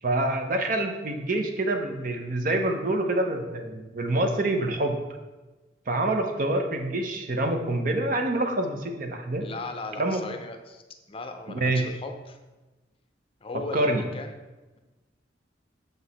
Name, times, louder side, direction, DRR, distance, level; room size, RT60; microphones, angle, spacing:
voice 1, 0.0-5.0 5.9-9.5 10.0-10.2 11.5-11.8 13.7-14.0, right 2 dB, 50° right, 4 dB, 0.8 m, -26 dB
voice 2, 9.4-10.8 11.1-12.4 13.4-14.4, left 3 dB, 30° left, 6 dB, 0.6 m, -37 dB
6.6 x 4.7 x 4.1 m, 1.2 s
head